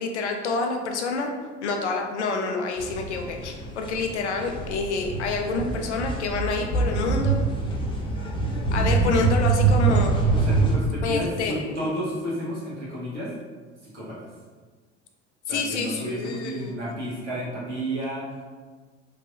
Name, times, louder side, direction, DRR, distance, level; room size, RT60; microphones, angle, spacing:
voice 1, 0.0-1.3 1.6-7.4 8.7-10.2 11.0-11.6 15.5-16.7, left 3 dB, 80° left, 3 dB, 0.5 m, -27 dB
sound 1, 2.8-10.7, right 4 dB, 15° left, 0.5 m, -24 dB
voice 2, 10.3-13.3 13.8-14.3 15.5-18.4, equal, 85° right, -7 dB, 1.0 m, -31 dB
3.1 x 2.6 x 2.4 m, 1.5 s
figure-of-eight pair, 65°, 34 cm